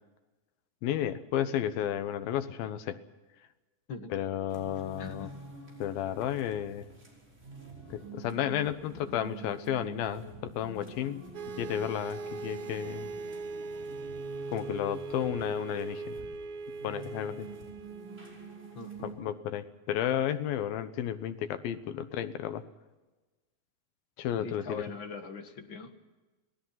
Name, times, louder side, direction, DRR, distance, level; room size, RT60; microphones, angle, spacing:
voice 1, 0.8-3.0 4.1-5.3 5.8-6.9 7.9-11.3 11.6-13.1 14.5-16.2 16.8-17.5 19.0-22.6 24.2-24.8, left 10 dB, 85° left, 10 dB, 3.0 m, -32 dB
sound 1, 4.5-19.1, right 3 dB, 20° right, 5.6 m, -47 dB
voice 2, 5.0-5.3 18.8-19.3 24.4-25.9, left 4 dB, 45° left, 6 dB, 1.7 m, -42 dB
sound 2, 11.3-19.1, right 3 dB, 75° right, 1.3 m, -40 dB
27.5 x 19.0 x 5.8 m, 1.2 s
omnidirectional pair, 4.1 m